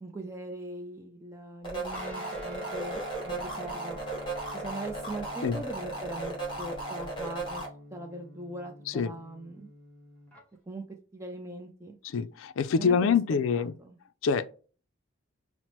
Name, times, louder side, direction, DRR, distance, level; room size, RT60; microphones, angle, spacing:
voice 1, 0.0-3.0 3.3-4.0 4.5-7.6 7.9-9.7 10.7-10.8 11.1-12.0 12.8-14.0, right 1 dB, 15° right, 0.4 m, -40 dB
sound 1, 1.6-7.6, right 2 dB, 25° left, 1.6 m, -36 dB
Guitar, 1.9-10.4, equal, 5° left, 0.9 m, -46 dB
voice 2, 12.1-13.7 14.2-14.5, left 6 dB, 75° left, 0.4 m, -25 dB
5.7 x 2.0 x 3.0 m
head